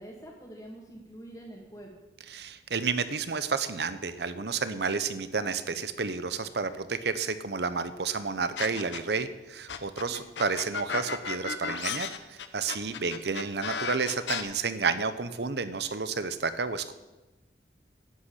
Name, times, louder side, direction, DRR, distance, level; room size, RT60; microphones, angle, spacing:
voice 1, 0.0-2.0 10.0-10.2 12.9-13.2, right 1 dB, 20° left, -3 dB, 1.8 m, -46 dB
voice 2, 2.3-16.9, right 4 dB, 65° right, 13 dB, 0.8 m, -31 dB
sound 1, 8.6-9.2 9.7-14.4, left 6 dB, 85° left, 0.9 m, -34 dB
11.5 x 8.1 x 8.4 m, 1.1 s
head